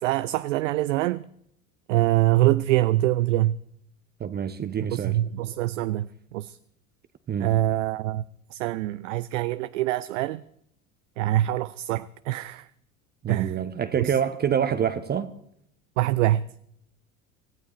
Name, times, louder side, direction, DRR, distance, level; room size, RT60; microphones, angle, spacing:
voice 1, 0.0-1.3 1.9-3.6 4.9-6.6 7.4-8.2 8.5-10.4 11.2-12.7 13.3-13.6 14.0-14.2 16.0-16.5, right 15 dB, 60° right, 0.5 m, -24 dB
voice 2, 4.2-5.2 7.3-7.5 13.2-15.3, right 8 dB, 20° right, 0.8 m, -26 dB
26.5 x 15.5 x 3.0 m
figure-of-eight pair, 70°, 43 cm